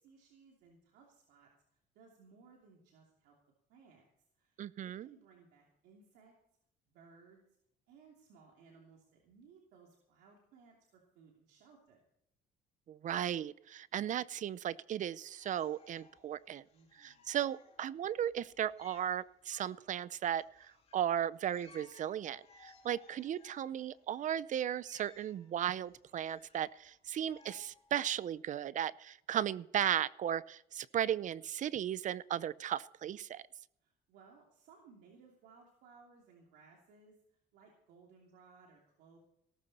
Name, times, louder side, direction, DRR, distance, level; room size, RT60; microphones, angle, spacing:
voice 1, 0.0-1.5 1.9-3.3 3.7-4.1 4.4-4.6 4.8-6.3 6.9-7.4 7.9-12.0 16.7-17.3 33.8-39.2, right 5 dB, 85° right, -1 dB, 3.0 m, -62 dB
voice 2, 4.6-5.1 12.9-16.6 17.0-33.4, right 10 dB, 50° right, 19 dB, 0.5 m, -36 dB
sound 1, 15.4-28.4, left 5 dB, 35° left, 2.8 m, -63 dB
18.0 x 13.5 x 4.3 m, 0.77 s
cardioid pair, 110°, 17 cm